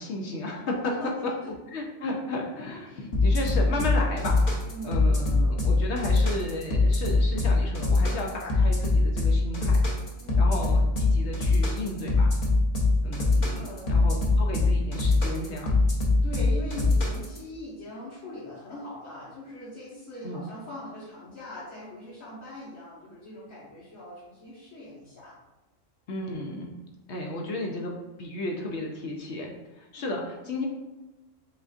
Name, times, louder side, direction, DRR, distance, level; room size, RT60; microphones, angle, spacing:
voice 1, 0.0-0.8 1.2-1.4 1.7-4.4 4.8-9.8 10.4-12.3 13.0-15.8 20.2-20.4 26.1-26.7 27.1-30.7, left 2 dB, 65° left, 0 dB, 0.9 m, -34 dB
voice 2, 0.8-1.5 4.7-4.9 10.2-10.5 13.5-14.1 16.1-25.4, left 1 dB, 90° left, -10 dB, 1.7 m, -41 dB
sound 1, 3.1-17.4, left 3 dB, 40° left, 1.0 m, -22 dB
7.5 x 2.6 x 2.4 m, 1.1 s
omnidirectional pair, 1.3 m